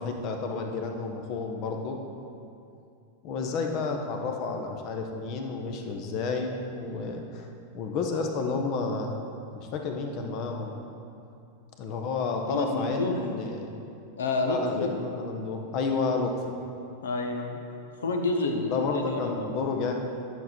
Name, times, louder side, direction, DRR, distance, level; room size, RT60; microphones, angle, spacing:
voice 1, 0.0-2.0 3.2-9.1 9.5-10.7 11.8-13.7 14.4-16.3 18.7-19.9, left 4 dB, 40° left, 3 dB, 1.1 m, -31 dB
voice 2, 12.5-13.2 14.2-14.9 17.0-17.6 18.0-19.6, left 3 dB, 65° left, 4 dB, 1.0 m, -29 dB
10.5 x 6.5 x 4.5 m, 2.6 s
figure-of-eight pair, 90°, 0 cm